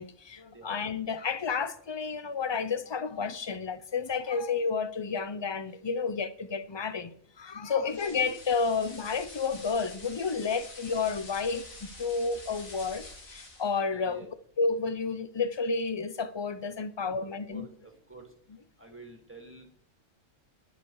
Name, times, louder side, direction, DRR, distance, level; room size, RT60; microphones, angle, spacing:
voice 1, 0.0-7.1 7.4-14.2 14.6-17.7, left 5 dB, 30° left, 0.5 m, -31 dB
sound 1, 7.9-13.8, left 2 dB, 85° left, 3.1 m, -47 dB
voice 2, 13.9-14.3 17.0-18.2 18.8-19.8, right 3 dB, 10° right, 2.4 m, -49 dB
19.0 x 6.9 x 4.8 m
omnidirectional pair, 1.4 m